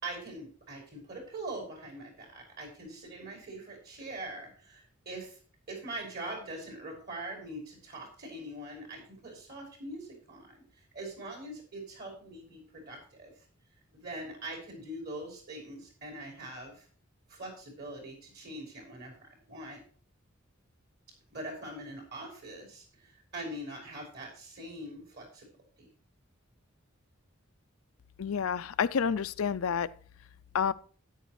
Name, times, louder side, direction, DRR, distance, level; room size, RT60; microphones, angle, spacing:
voice 1, 0.0-5.4 5.7-10.6 10.9-13.3 13.9-16.9 17.3-19.8 21.3-25.5 25.8-25.9, right 1 dB, 55° right, 6.0 m, -43 dB
voice 2, 28.2-29.9 30.5-30.7, left 7 dB, 80° left, 0.5 m, -29 dB
13.0 x 10.0 x 3.1 m
head